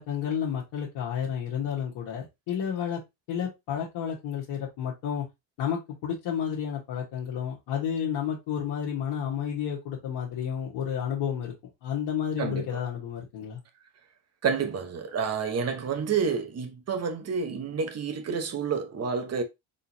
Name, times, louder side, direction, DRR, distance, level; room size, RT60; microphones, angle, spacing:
voice 1, 0.0-3.0 3.3-5.2 5.6-11.5 11.8-13.6, left 8 dB, 65° left, 1.6 m, -31 dB
voice 2, 12.4-12.8 14.4-19.4, right 6 dB, 35° right, 1.0 m, -29 dB
3.9 x 3.8 x 2.8 m
cardioid pair, 115°, 47 cm